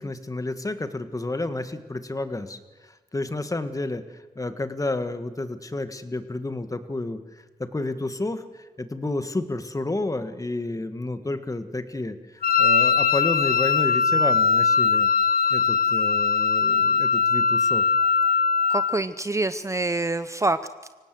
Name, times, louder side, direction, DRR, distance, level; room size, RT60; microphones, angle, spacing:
voice 1, 0.0-15.1 15.5-17.9, left 2 dB, 20° left, 10 dB, 1.7 m, -31 dB
Wind instrument woodwind instrument, 12.4-19.0, left 6 dB, 75° left, 0.7 m, -21 dB
voice 2, 18.7-20.9, right 2 dB, 20° right, 12 dB, 0.7 m, -26 dB
25.0 x 17.5 x 7.8 m, 1.2 s
cardioid pair, 75°, 16 cm